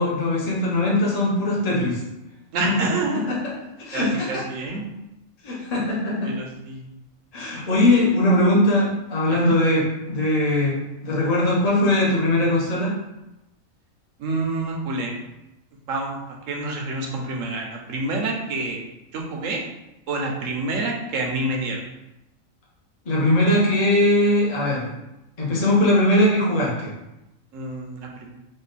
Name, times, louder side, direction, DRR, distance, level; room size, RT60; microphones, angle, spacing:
voice 1, 0.0-2.0 2.6-2.7 3.3-3.4 3.8-4.4 5.4-6.3 7.3-10.8 11.0-12.9 23.0-24.9 25.4-26.9, left 1 dB, 30° left, -5 dB, 1.0 m, -20 dB
voice 2, 2.5-3.3 3.9-4.8 6.2-6.9 9.3-9.6 14.2-15.1 15.9-16.2 16.5-18.8 19.1-19.6 20.1-21.9 27.5-28.3, right 2 dB, 75° right, 0 dB, 1.1 m, -28 dB
3.8 x 2.5 x 4.0 m, 0.92 s
omnidirectional pair, 1.4 m